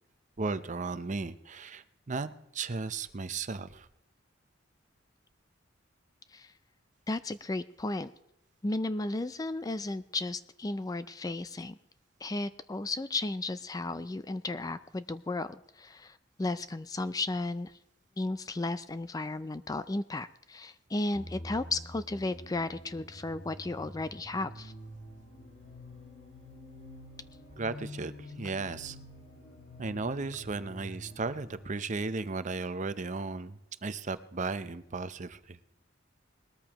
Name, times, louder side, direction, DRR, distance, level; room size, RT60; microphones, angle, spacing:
voice 1, 0.4-3.9 27.6-29.0 29.8-35.6, right 3 dB, 40° right, 13 dB, 0.6 m, -35 dB
voice 2, 7.1-8.1 8.6-11.8 12.2-17.7 18.2-24.7, left 2 dB, 20° left, 13 dB, 0.4 m, -34 dB
sound 1, 21.1-31.8, left 1 dB, 65° left, 1.8 m, -47 dB
20.5 x 13.5 x 3.0 m, 0.83 s
head